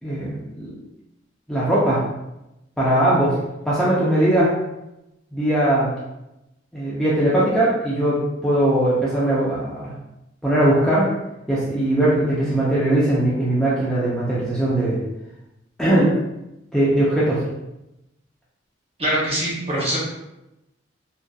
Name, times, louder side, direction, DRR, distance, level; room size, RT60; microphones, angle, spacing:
voice 1, 0.0-0.8 1.5-2.0 2.8-3.4 3.7-4.6 5.3-5.9 6.7-9.9 10.4-11.2 11.5-15.0 15.8-16.2 16.7-17.5, right 1 dB, ahead, -9 dB, 0.4 m, -20 dB
voice 2, 19.0-20.0, right 1 dB, 30° right, -5 dB, 0.8 m, -23 dB
2.6 x 2.2 x 2.2 m, 0.92 s
head